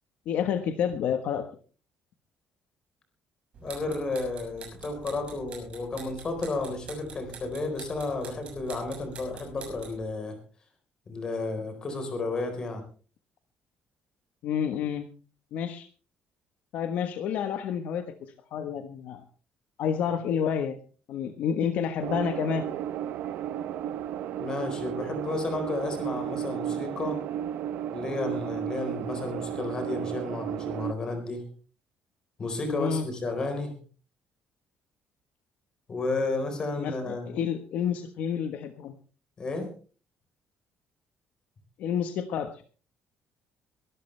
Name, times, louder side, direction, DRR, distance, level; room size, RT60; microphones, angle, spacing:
voice 1, 0.2-1.5 14.4-15.1 15.5-15.9 16.7-19.2 19.8-20.8 21.1-22.7 32.7-33.1 36.8-38.9 41.8-42.6, left 8 dB, 60° left, 7 dB, 1.3 m, -29 dB
sound 1, 3.5-10.0, right 4 dB, 40° right, 6.2 m, -46 dB
voice 2, 3.6-10.4 11.1-12.8 24.4-27.2 27.9-31.4 32.4-33.8 35.9-37.3 39.4-39.7, left 3 dB, 25° left, 6 dB, 4.3 m, -32 dB
sound 2, 22.0-30.9, right 10 dB, 70° right, 0.8 m, -33 dB
23.0 x 13.0 x 3.4 m, 0.38 s
cardioid pair, 175°, 3 cm